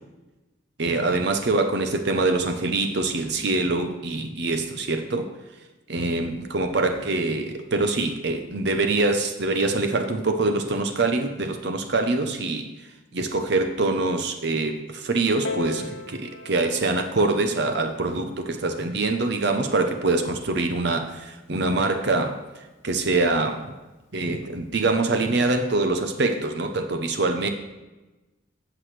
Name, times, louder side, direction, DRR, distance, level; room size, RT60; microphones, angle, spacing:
voice 1, 0.8-5.3 5.9-12.7 13.1-22.4 22.8-23.7 24.1-27.5, right 3 dB, 55° right, 6 dB, 0.7 m, -24 dB
Piano, 15.4-20.6 21.5-21.6, left 3 dB, 70° left, 0.8 m, -39 dB
15.5 x 6.0 x 3.2 m, 1.1 s
head